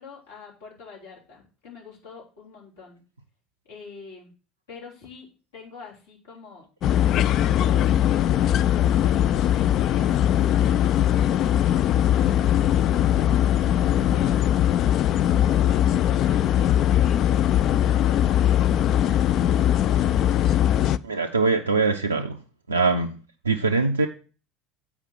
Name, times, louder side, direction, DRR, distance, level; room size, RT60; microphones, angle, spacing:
voice 1, 0.0-3.0 3.7-4.3 4.7-5.3 5.5-6.7 7.3-9.2 9.8-14.4 15.4-17.2 17.6-19.5, left 5 dB, 75° left, 3.5 m, -45 dB
sound 1, 6.8-21.0, left 11 dB, 45° left, 0.3 m, -20 dB
voice 2, 21.0-22.4 22.7-23.1 23.4-24.1, right 4 dB, 80° right, 0.4 m, -22 dB
7.9 x 5.2 x 6.3 m
figure-of-eight pair, 65°, 0 cm